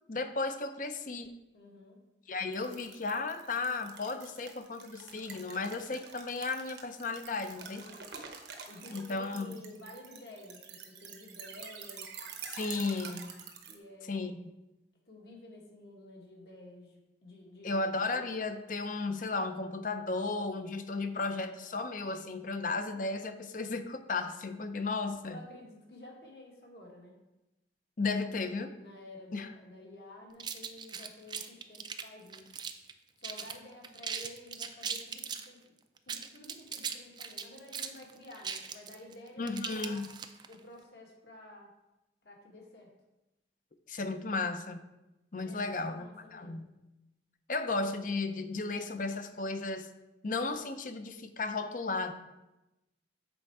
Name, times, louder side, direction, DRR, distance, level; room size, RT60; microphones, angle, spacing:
voice 1, 0.1-1.3 2.3-7.8 8.9-9.6 12.5-13.3 14.1-14.4 17.6-25.4 28.0-28.7 29.3-29.5 39.4-40.1 43.9-44.8 45.3-46.7 47.5-49.9 50.2-52.1, left 3 dB, 45° left, 9 dB, 0.5 m, -34 dB
voice 2, 1.5-2.0 7.7-8.1 8.7-12.2 13.7-14.3 15.1-17.8 25.3-27.2 28.0-28.4 28.8-32.5 33.2-35.7 36.0-40.0 40.5-41.7 42.2-42.9 45.5-46.7, left 1 dB, 65° left, -1 dB, 1.7 m, -51 dB
sound 1, 2.5-13.8, right 6 dB, 75° right, 1.0 m, -47 dB
sound 2, 30.4-32.9 33.2-33.6 33.8-35.5 36.0-40.5, right 6 dB, 25° right, 0.4 m, -39 dB
7.9 x 4.4 x 4.7 m, 0.97 s
head